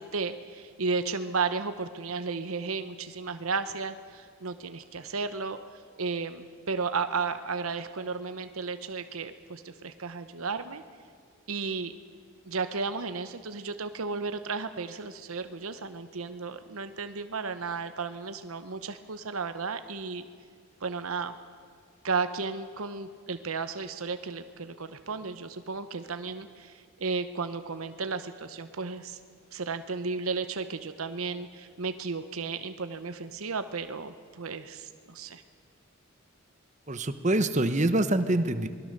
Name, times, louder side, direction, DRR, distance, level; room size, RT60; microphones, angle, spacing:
voice 1, 0.0-5.6 6.0-10.8 11.5-11.9 12.5-20.2 20.8-21.3 22.0-29.2 29.5-35.4, right 4 dB, 85° right, 10 dB, 0.9 m, -34 dB
voice 2, 36.9-38.7, right 1 dB, 35° right, 10 dB, 1.0 m, -25 dB
28.0 x 20.5 x 6.7 m, 2.2 s
head